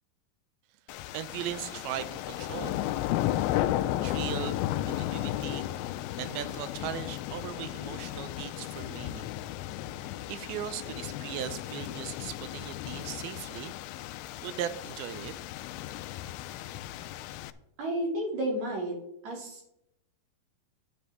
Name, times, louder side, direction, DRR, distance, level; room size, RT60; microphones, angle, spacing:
sound 1, 0.9-17.5, left 14 dB, 85° left, 2.3 m, -34 dB
voice 1, 1.1-2.8 4.0-4.6 4.9-5.8 6.2-9.3 10.0-13.8 14.4-15.3, right 11 dB, 80° right, 13 dB, 2.4 m, -38 dB
voice 2, 17.8-19.0 19.2-19.7, right 1 dB, 50° right, -1 dB, 3.5 m, -32 dB
10.5 x 9.4 x 3.5 m, 0.82 s
omnidirectional pair, 4.4 m